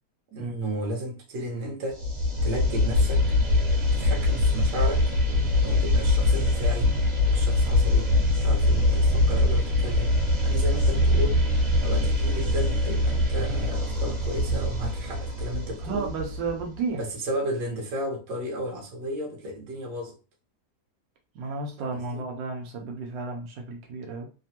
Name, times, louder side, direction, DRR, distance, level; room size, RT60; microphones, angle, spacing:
voice 1, 0.3-2.0 2.4-3.2 4.0-5.1 5.6-6.9 7.3-8.1 8.4-10.2 10.4-11.4 11.8-16.1 16.9-20.1 21.8-22.2, right 1 dB, 65° right, 1.5 m, -33 dB
sound 1, 1.9-16.7, left 2 dB, 40° right, 1.4 m, -23 dB
voice 2, 15.8-17.0 21.4-24.3, right 4 dB, 90° right, 1.3 m, -32 dB
3.4 x 2.1 x 2.8 m
omnidirectional pair, 2.0 m